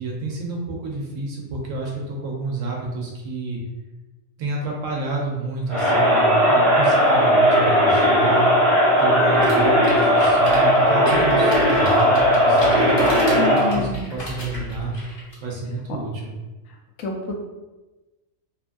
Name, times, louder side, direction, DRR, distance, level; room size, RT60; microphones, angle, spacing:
voice 1, 0.0-3.6 4.4-8.5 9.0-14.9 15.4-16.3, right 3 dB, 85° right, -1 dB, 1.0 m, -29 dB
Crowd, 5.7-13.8, equal, 30° right, 0.8 m, -17 dB
sound 1, 9.3-15.4, equal, 45° left, 0.7 m, -36 dB
voice 2, 13.3-14.1 17.0-17.4, left 3 dB, 80° left, 1 dB, 1.0 m, -27 dB
2.9 x 2.3 x 2.5 m, 1.1 s
omnidirectional pair, 1.3 m